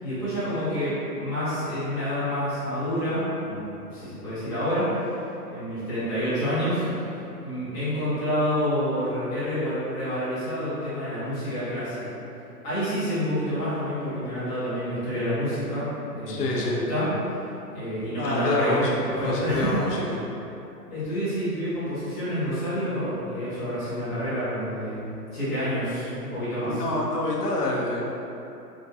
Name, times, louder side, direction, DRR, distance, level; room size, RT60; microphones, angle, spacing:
voice 1, 0.0-5.2 5.5-7.1 7.4-12.2 12.6-17.4 17.7-19.7 20.9-25.0 25.3-26.8, equal, 10° left, -17 dB, 0.5 m, -28 dB
voice 2, 16.3-16.8 18.2-20.1 26.6-28.1, left 2 dB, 70° left, -3 dB, 0.8 m, -27 dB
3.6 x 2.6 x 2.6 m, 2.9 s
hypercardioid pair, 135°, 49 cm